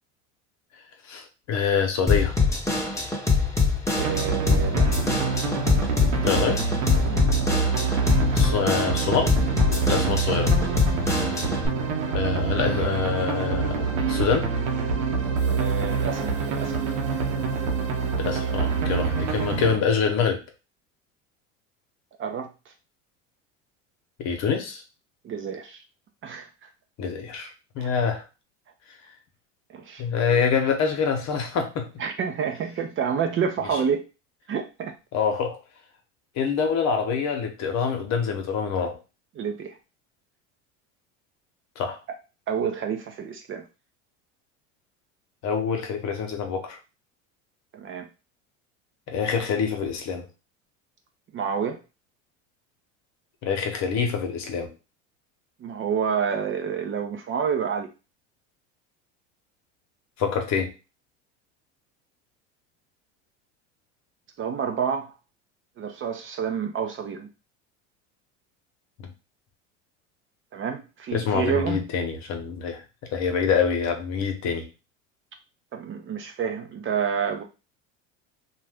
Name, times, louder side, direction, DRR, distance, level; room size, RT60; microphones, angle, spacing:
voice 1, 1.1-2.3 6.2-6.6 8.3-9.3 9.9-10.5 12.1-14.5 18.2-20.4 24.2-24.8 27.0-28.2 30.0-31.9 35.1-35.6 36.4-39.0 41.8-42.0 45.4-46.8 49.1-50.3 53.4-54.7 60.2-60.7 69.0-69.1 71.1-72.8 73.1-74.7, left 6 dB, 45° left, 0.9 m, -25 dB
Drum kit / Drum, 2.1-11.7, left 4 dB, 10° left, 0.9 m, -24 dB
voice 2, 4.0-4.9 7.1-7.3 15.4-16.8 22.2-22.5 25.2-25.8 26.2-26.5 27.8-27.9 29.7-30.0 32.0-34.0 34.5-34.9 39.4-39.8 42.5-43.6 47.7-48.1 51.3-51.8 55.6-57.9 64.4-65.1 65.8-67.3 70.5-71.8 75.7-77.4, right 7 dB, 35° right, 0.5 m, -29 dB
sound 1, 4.0-19.8, right 5 dB, 85° right, 0.9 m, -26 dB
2.6 x 2.3 x 3.4 m
hypercardioid pair, 85°, 37 cm